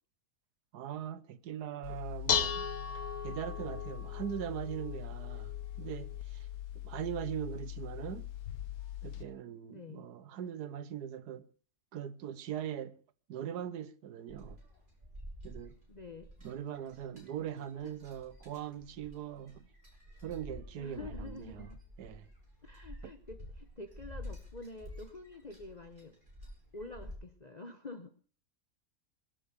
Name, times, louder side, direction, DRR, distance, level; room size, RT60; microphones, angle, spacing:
voice 1, 0.7-2.7 3.2-6.5 6.8-8.3 9.0-11.5 11.9-13.0 13.3-14.6 15.4-15.8 16.4-19.7 20.2-21.7 22.0-22.3, right 10 dB, 85° right, 1.4 m, -41 dB
Dishes pots and pans, 1.8-9.2, left 8 dB, 70° left, 1.5 m, -38 dB
voice 2, 9.7-10.1 15.9-16.3 16.8-17.2 17.8-17.9 20.8-21.8 22.6-26.2 26.7-28.1, left 2 dB, 30° left, 0.9 m, -48 dB
sound 1, 14.3-27.1, equal, 30° right, 5.0 m, -49 dB
21.5 x 7.5 x 6.8 m
omnidirectional pair, 1.7 m